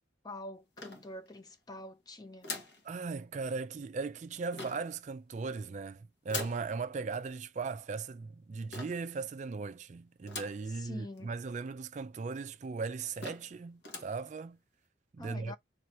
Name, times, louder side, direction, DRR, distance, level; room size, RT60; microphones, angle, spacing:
voice 1, 0.2-2.5 10.7-11.3 15.2-15.6, left 1 dB, 20° left, 0.5 m, -45 dB
sound 1, 0.8-1.5 2.4-2.8 4.5-5.0 6.3-6.7 8.7-9.1 10.3-10.7 11.2-11.3 11.5-11.6 12.3-12.4 12.8-12.9 13.2-13.5 13.8-14.2, left 3 dB, 60° left, 1.2 m, -42 dB
voice 2, 2.8-14.6 15.1-15.5, right 4 dB, 35° right, 0.3 m, -38 dB
4.1 x 2.8 x 4.6 m
head